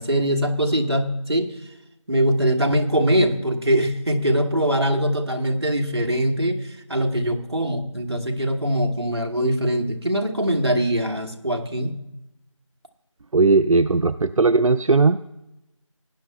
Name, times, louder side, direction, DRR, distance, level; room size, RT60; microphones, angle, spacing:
voice 1, 0.0-1.5 2.1-6.6 6.9-11.9, equal, 50° right, 2 dB, 1.3 m, -22 dB
voice 2, 13.3-15.2, right 3 dB, 75° right, 12 dB, 0.4 m, -17 dB
19.0 x 10.0 x 2.2 m, 0.91 s
figure-of-eight pair, 180°, 17 cm